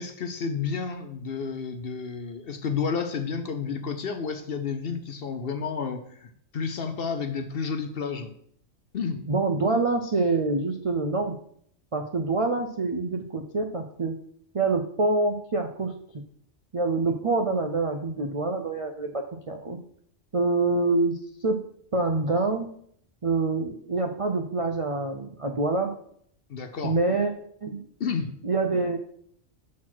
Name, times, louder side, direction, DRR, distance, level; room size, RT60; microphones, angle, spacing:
voice 1, 0.0-8.3 8.9-9.2 26.5-27.0 28.0-28.3, left 5 dB, 55° left, 7 dB, 0.7 m, -31 dB
voice 2, 9.3-11.4 11.9-14.2 14.5-15.9 16.7-19.8 20.3-21.6 21.9-22.7 23.2-25.9 26.8-27.3 27.6-27.9 28.4-29.0, right 3 dB, 55° right, 4 dB, 0.3 m, -26 dB
6.2 x 4.2 x 6.0 m, 0.65 s
omnidirectional pair, 1.4 m